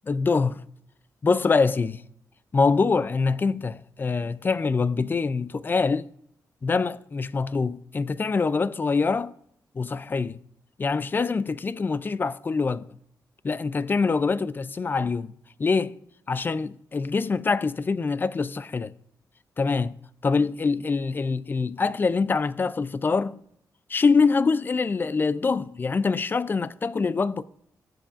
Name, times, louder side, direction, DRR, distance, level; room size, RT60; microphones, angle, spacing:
voice 1, 0.0-0.6 1.2-2.0 2.5-6.1 6.6-9.3 9.7-10.4 10.8-12.9 13.4-15.3 15.6-16.0 16.3-18.9 19.6-19.9 20.2-23.4 23.9-27.4, left 4 dB, 30° left, 0.4 m, -24 dB
21.0 x 7.6 x 2.5 m
wide cardioid pair, 135°, 7 cm